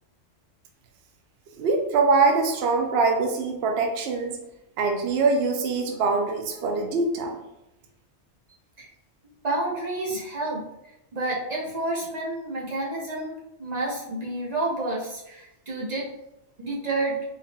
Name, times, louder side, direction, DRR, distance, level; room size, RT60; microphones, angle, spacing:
voice 1, 1.6-4.3 4.8-7.4, right 4 dB, 65° right, 3 dB, 0.8 m, -23 dB
voice 2, 9.4-10.6 11.1-16.1 16.6-17.2, right 2 dB, 40° right, -4 dB, 0.9 m, -29 dB
3.7 x 3.6 x 2.3 m, 0.90 s
omnidirectional pair, 1.2 m